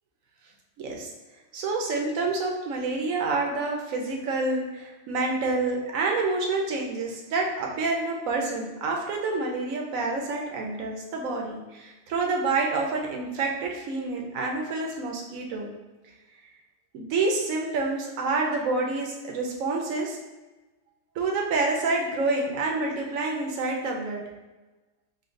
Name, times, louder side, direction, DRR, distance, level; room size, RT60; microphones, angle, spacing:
voice 1, 0.8-1.1 1.5-15.7 16.9-20.2 21.1-24.2, right 3 dB, 65° right, 0 dB, 1.0 m, -28 dB
5.6 x 2.3 x 2.5 m, 1.1 s
omnidirectional pair, 1.6 m